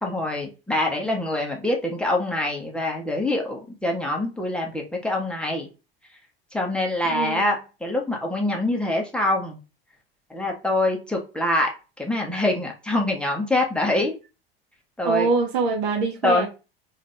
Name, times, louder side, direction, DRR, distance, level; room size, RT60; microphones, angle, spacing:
voice 1, 0.0-5.7 6.5-9.6 10.3-11.7 12.0-14.1 15.0-15.3 16.2-16.5, left 1 dB, 5° left, 1.2 m, -25 dB
voice 2, 7.1-7.5 15.0-16.5, right 4 dB, 55° right, 1.0 m, -24 dB
3.9 x 2.7 x 3.3 m
figure-of-eight pair, 75°, 30 cm